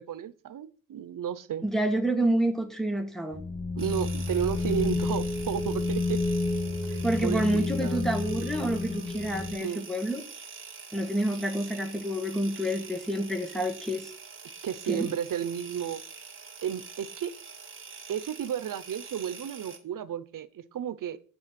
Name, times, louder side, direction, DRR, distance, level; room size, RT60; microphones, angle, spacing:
voice 1, 0.0-1.7 3.8-6.2 6.9-8.0 9.6-9.9 14.6-16.0 16.6-17.3 18.1-21.2, right 9 dB, 85° right, 13 dB, 0.8 m, -33 dB
voice 2, 1.6-3.4 7.0-10.2 10.9-14.1 14.9-15.1, right 1 dB, ahead, 6 dB, 1.9 m, -28 dB
sound 1, 3.3-9.5, left 3 dB, 35° left, 3.2 m, -30 dB
sound 2, 3.8-19.8, right 5 dB, 40° right, 2.2 m, -45 dB
8.9 x 7.2 x 5.9 m, 0.40 s
wide cardioid pair, 110°, 32 cm